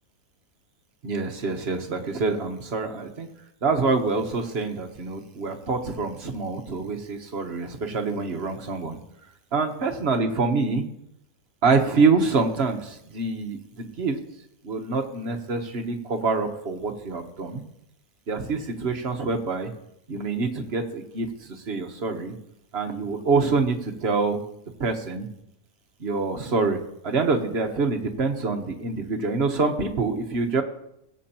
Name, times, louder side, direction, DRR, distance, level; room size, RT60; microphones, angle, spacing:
voice 1, 1.0-3.3 3.6-9.0 9.5-10.9 11.6-14.2 14.6-17.6 18.3-19.7 20.1-22.4 22.7-24.4 24.8-25.3 26.0-30.6, right 4 dB, 50° right, 5 dB, 1.2 m, -26 dB
20.0 x 7.6 x 2.9 m, 0.80 s
omnidirectional pair, 1.6 m